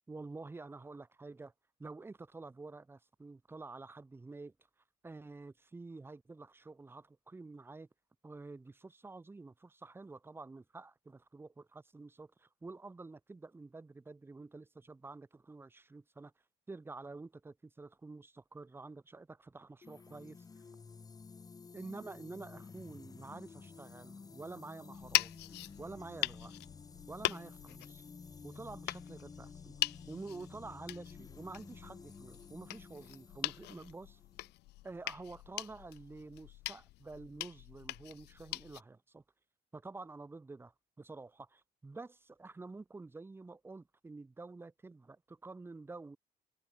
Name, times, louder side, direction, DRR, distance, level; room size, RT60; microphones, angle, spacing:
voice 1, 0.1-1.5 1.8-4.5 5.0-7.9 8.2-16.3 16.7-20.4 21.7-26.5 27.1-28.0 28.4-29.8 30.1-34.2 34.8-39.2 39.7-46.2, right 3 dB, 15° right, 0.7 m, -49 dB
sound 1, 19.8-34.5, left 5 dB, 20° left, 0.8 m, -53 dB
sound 2, 24.9-38.8, left 19 dB, 80° left, 0.5 m, -41 dB
cardioid pair, 110°, 17 cm